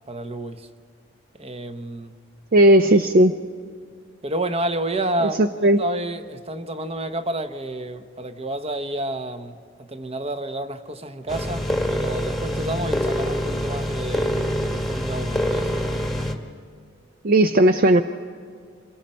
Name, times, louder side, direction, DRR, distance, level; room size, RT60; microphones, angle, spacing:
voice 1, 0.1-0.7 1.4-2.1 4.2-5.4 5.8-15.7, right 1 dB, 30° right, 0.9 m, -30 dB
voice 2, 2.5-3.3 5.4-5.8 17.2-18.0, right 1 dB, 50° right, 0.5 m, -15 dB
sound 1, 11.3-16.3, equal, ahead, 1.4 m, -25 dB
27.0 x 22.5 x 4.4 m
head